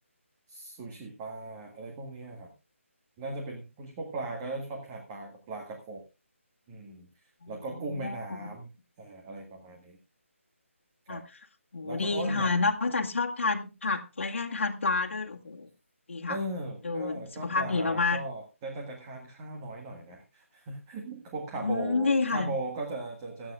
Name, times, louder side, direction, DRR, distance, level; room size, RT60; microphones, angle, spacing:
voice 1, 0.5-2.5 3.2-6.0 6.7-7.1 7.5-8.7 9.0-10.0 11.1-11.2 11.8-12.5 16.3-23.5, right 2 dB, 20° right, 1 dB, 1.8 m, -38 dB
voice 2, 7.9-8.5 11.1-11.2 11.7-15.7 16.1-16.4 16.8-18.2 21.6-22.5, left 3 dB, 60° left, 1 dB, 1.7 m, -29 dB
24.5 x 8.9 x 2.4 m, 0.27 s
figure-of-eight pair, 155°, 7 cm